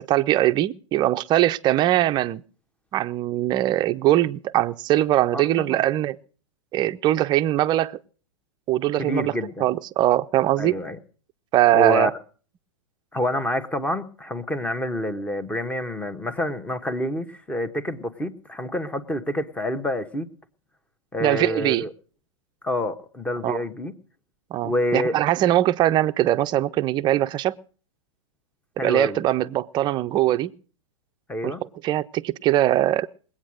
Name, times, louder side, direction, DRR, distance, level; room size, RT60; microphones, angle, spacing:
voice 1, 0.0-2.4 2.9-6.2 6.7-8.0 8.7-9.3 9.6-10.8 11.5-12.1 21.2-21.9 23.4-23.6 24.5-27.6 28.8-30.5 31.4-31.5 31.8-33.1, right 14 dB, 30° right, 0.7 m, -21 dB
voice 2, 5.3-5.8 9.0-9.6 10.6-11.0 11.7-12.1 13.1-20.3 21.1-21.9 22.6-23.9 24.6-25.1 28.8-29.2 31.3-31.6, left 1 dB, 10° left, 1.3 m, -27 dB
20.5 x 8.8 x 6.3 m
hypercardioid pair, 110°, 16 cm